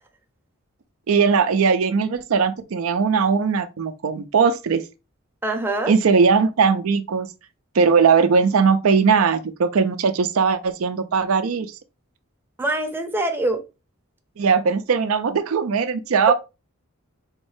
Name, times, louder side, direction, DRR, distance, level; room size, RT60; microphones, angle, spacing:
voice 1, 1.1-4.8 5.9-7.3 7.7-11.7 14.4-16.3, right 5 dB, 75° right, 0.5 m, -19 dB
voice 2, 5.4-5.9 12.6-13.6, right 1 dB, 10° right, 0.6 m, -24 dB
4.0 x 3.1 x 3.2 m
head